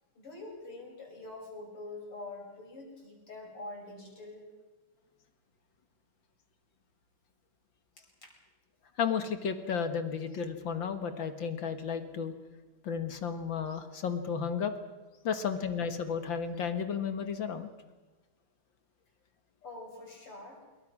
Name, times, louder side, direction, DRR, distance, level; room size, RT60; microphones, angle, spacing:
voice 1, 0.2-4.5 8.2-8.3 19.6-20.6, left 2 dB, 90° left, 0 dB, 7.0 m, -45 dB
voice 2, 9.0-12.3 12.8-14.7 15.2-17.7, left 6 dB, 60° left, 8 dB, 2.3 m, -33 dB
25.0 x 23.0 x 6.1 m, 1.2 s
omnidirectional pair, 2.4 m